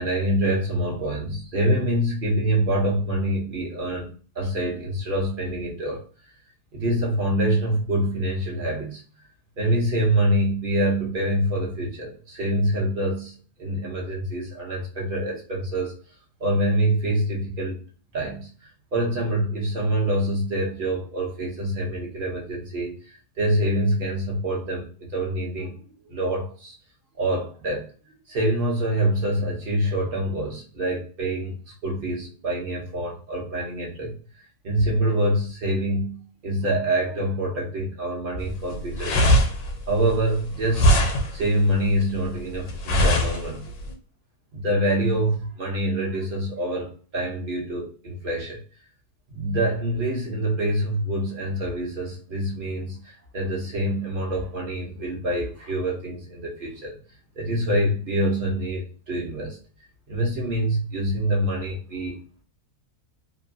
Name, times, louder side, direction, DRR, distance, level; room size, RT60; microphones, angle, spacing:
voice 1, 0.0-4.1 4.4-6.0 6.7-9.0 9.6-13.3 13.6-15.9 16.4-17.8 18.1-18.5 18.9-25.7 26.0-26.7 27.2-27.9 28.3-34.1 34.6-39.4 39.9-40.9 41.3-43.7 44.5-48.6 49.3-56.9 57.4-59.6 60.1-62.2, right 1 dB, 50° right, -1 dB, 0.6 m, -25 dB
sound 1, 38.4-43.9, equal, 75° left, 1.1 m, -22 dB
2.9 x 2.2 x 2.5 m, 0.38 s
omnidirectional pair, 1.7 m